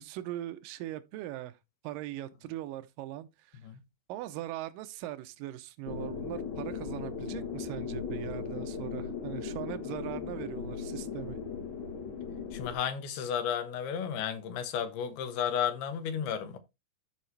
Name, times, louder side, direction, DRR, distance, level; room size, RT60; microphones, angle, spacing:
voice 1, 0.0-1.6 1.8-3.6 4.1-11.4, right 14 dB, 75° right, 2.2 m, -40 dB
sound 1, 5.9-12.7, left 6 dB, 60° left, 1.3 m, -37 dB
voice 2, 12.5-16.6, left 8 dB, 90° left, 3.2 m, -33 dB
13.0 x 4.8 x 3.3 m
omnidirectional pair, 4.4 m